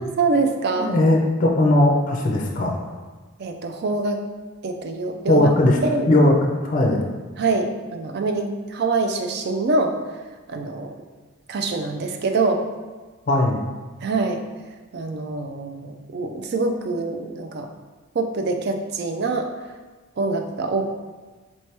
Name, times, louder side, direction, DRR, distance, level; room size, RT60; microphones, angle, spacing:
voice 1, 0.0-0.9 3.4-4.2 4.6-5.5 5.8-6.1 7.4-10.0 10.5-11.0 11.5-12.6 14.0-14.4 14.9-17.7 18.1-19.5 20.2-20.8, right 3 dB, 45° right, 5 dB, 0.3 m, -24 dB
voice 2, 0.8-2.9 5.3-5.8 6.1-7.0 13.3-13.6, left 1 dB, 35° left, -1 dB, 0.4 m, -18 dB
4.3 x 3.3 x 2.8 m, 1.3 s
head